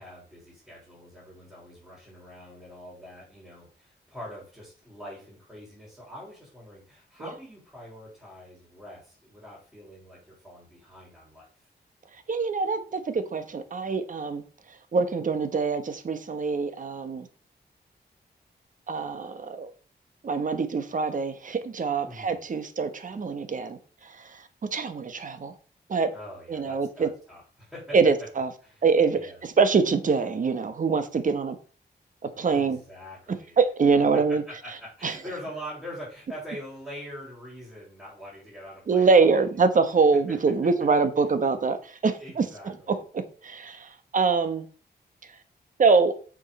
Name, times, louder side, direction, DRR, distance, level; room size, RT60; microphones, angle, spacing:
voice 1, 0.0-11.5 22.0-22.4 26.1-28.0 28.6-28.8 29.1-29.4 32.5-33.6 34.3-39.5 40.3-40.4 42.2-43.0, equal, 5° right, 4.1 m, -44 dB
voice 2, 12.3-14.4 14.9-17.3 18.9-19.7 20.2-23.8 24.0-24.4 24.7-25.5 25.9-26.1 26.5-27.1 27.9-28.5 28.8-31.6 32.4-32.8 33.6-34.4 35.0-35.1 38.9-44.7 45.8-46.1, right 4 dB, 50° right, 1.1 m, -24 dB
7.1 x 6.4 x 5.2 m
wide cardioid pair, 150°, 17 cm